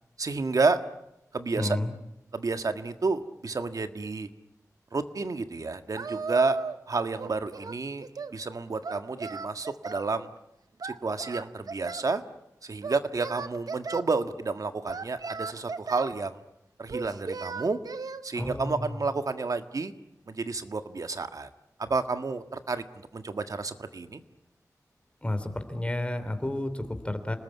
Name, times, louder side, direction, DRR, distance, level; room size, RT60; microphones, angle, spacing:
voice 1, 0.2-0.8 1.3-1.8 2.3-4.3 4.9-6.6 6.9-8.1 8.3-10.3 10.8-12.2 12.6-16.4 16.8-17.8 18.2-19.9 20.3-21.5 21.8-24.2, right 3 dB, 65° right, 8 dB, 1.7 m, -30 dB
voice 2, 1.6-2.0 18.3-18.9 25.2-27.4, left 1 dB, 20° left, 9 dB, 3.1 m, -31 dB
Singing, 5.9-6.9 7.2-8.4 8.8-10.1 10.8-12.1 12.8-14.0 14.9-16.2 16.9-18.2, right 4 dB, 85° right, 1.0 m, -36 dB
28.5 x 20.0 x 9.6 m, 0.87 s
wide cardioid pair, 85°, 6 cm